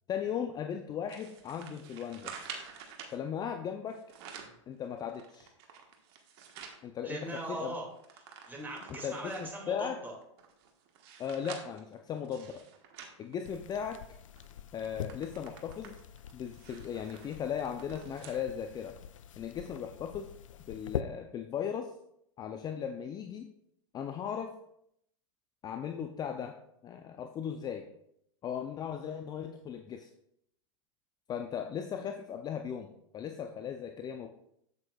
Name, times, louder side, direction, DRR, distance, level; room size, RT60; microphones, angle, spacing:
voice 1, 0.1-2.3 3.1-4.0 4.7-5.5 6.8-7.2 7.5-7.7 9.0-10.0 11.2-12.6 13.2-14.0 14.7-16.0 16.3-18.9 19.4-20.3 20.7-21.9 22.4-23.5 23.9-24.5 25.6-26.6 26.8-27.8 28.4-30.1 31.3-34.3, left 8 dB, 25° left, 6 dB, 0.5 m, -37 dB
sound 1, 1.1-3.2 3.9-4.6 5.1-6.8 7.3-7.4 7.6-9.6 10.2-13.9 14.4-14.5 14.8-18.4 18.9-19.0 19.8-19.9, right 7 dB, 50° right, 1.4 m, -49 dB
voice 2, 7.0-7.8 8.2-10.1, right 1 dB, 10° right, -1 dB, 2.3 m, -40 dB
sound 2, 13.4-21.0, left 9 dB, 80° left, 0.4 m, -44 dB
8.2 x 7.8 x 2.3 m, 0.74 s
hypercardioid pair, 110°, 16 cm